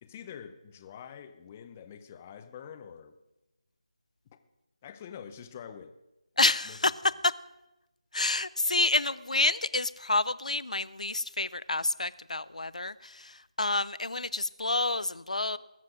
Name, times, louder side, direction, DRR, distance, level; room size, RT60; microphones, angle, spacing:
voice 1, 0.0-3.1 4.3-4.4 4.8-5.9 6.6-6.8, left 8 dB, 15° left, 10 dB, 0.7 m, -46 dB
voice 2, 6.4-6.9 8.1-15.6, left 2 dB, 80° left, 18 dB, 0.6 m, -29 dB
20.0 x 7.5 x 6.3 m, 0.97 s
figure-of-eight pair, 170°, 4 cm